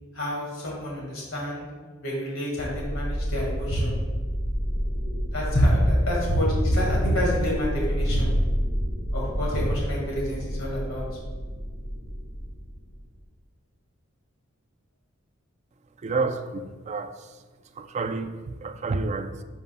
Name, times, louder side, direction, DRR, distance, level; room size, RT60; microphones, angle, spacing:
voice 1, 0.1-1.7 2.0-3.9 5.3-8.3 9.1-11.1, equal, 85° left, 1.8 m, -26 dB
sound 1, 2.6-13.2, equal, 40° left, 1.5 m, -29 dB
voice 2, 16.0-17.4 17.7-19.4, right 3 dB, 35° right, 0.3 m, -30 dB
10.5 x 5.4 x 2.2 m
head